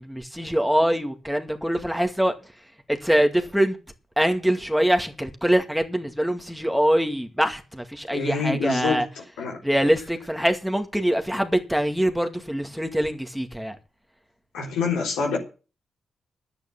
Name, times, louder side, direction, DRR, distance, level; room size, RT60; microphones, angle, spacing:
voice 1, 0.0-2.3 2.9-3.8 4.2-9.0 9.6-13.8, equal, ahead, 2.2 m, -23 dB
voice 2, 8.1-9.1 9.4-9.6 14.5-15.4, left 4 dB, 85° left, 3.7 m, -26 dB
10.5 x 9.1 x 7.2 m
hypercardioid pair, 40°, 0 cm